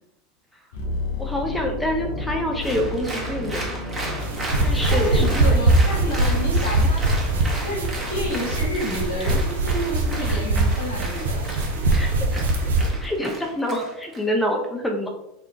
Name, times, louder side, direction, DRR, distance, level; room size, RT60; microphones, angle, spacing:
sound 1, 0.7-10.7 11.0-11.2, left 2 dB, 70° left, 0.7 m, -34 dB
voice 1, 1.2-3.8 4.6-5.6 10.2-10.4 11.9-12.4 13.0-15.1, equal, 10° left, 2 dB, 0.6 m, -27 dB
Applause, 2.6-14.2, right 1 dB, 25° right, 1.0 m, -34 dB
sound 2, 4.2-12.9, right 2 dB, 80° right, 0.4 m, -22 dB
voice 2, 4.9-7.1 7.6-11.6, equal, 85° left, -3 dB, 1.2 m, -30 dB
3.0 x 2.3 x 3.4 m, 0.82 s
hypercardioid pair, 85°, 0 cm